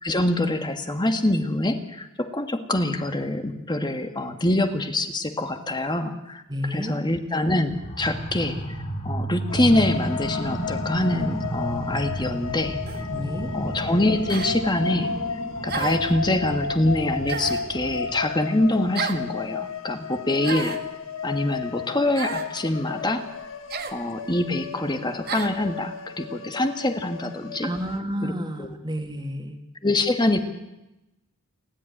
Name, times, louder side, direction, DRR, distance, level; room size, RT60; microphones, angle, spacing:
voice 1, 0.0-8.8 9.0-13.0 13.5-15.1 15.6-20.8 21.2-23.2 23.9-27.7 28.2-28.3 28.6-28.7 29.8-30.4, left 1 dB, 20° left, 7 dB, 1.5 m, -25 dB
voice 2, 6.5-7.0 13.1-13.5 27.6-29.6, equal, 20° right, 5 dB, 2.3 m, -30 dB
sound 1, 7.7-18.2, right 1 dB, 40° left, 6.1 m, -32 dB
sound 2, 9.5-28.0, left 6 dB, 65° left, 1.5 m, -34 dB
sound 3, 12.9-13.1 14.3-14.5 15.7-16.1 17.3-17.7 19.0-19.3 20.4-20.9 22.2-22.5 23.7-24.0 25.3-25.6, right 6 dB, 45° right, 1.6 m, -31 dB
29.0 x 11.0 x 10.0 m, 0.95 s
head